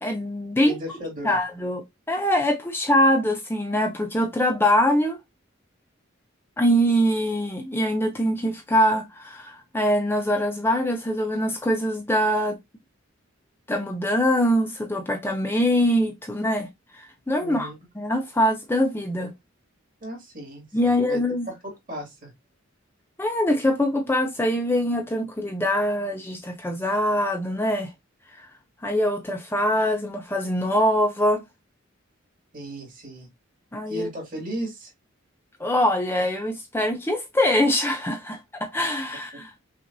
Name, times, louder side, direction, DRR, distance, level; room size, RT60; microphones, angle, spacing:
voice 1, 0.0-0.7 1.2-1.8 2.1-5.2 6.6-12.6 13.7-16.7 16.9-17.7 18.0-19.3 20.7-21.5 23.2-27.9 28.4-28.5 28.8-31.4 33.7-34.1 35.6-39.5, equal, 10° left, 0.5 m, -23 dB
voice 2, 0.6-1.4 17.4-17.7 20.0-21.2 21.5-22.3 32.5-33.3 33.9-34.9, equal, 45° right, 2.4 m, -35 dB
5.9 x 2.5 x 2.6 m
head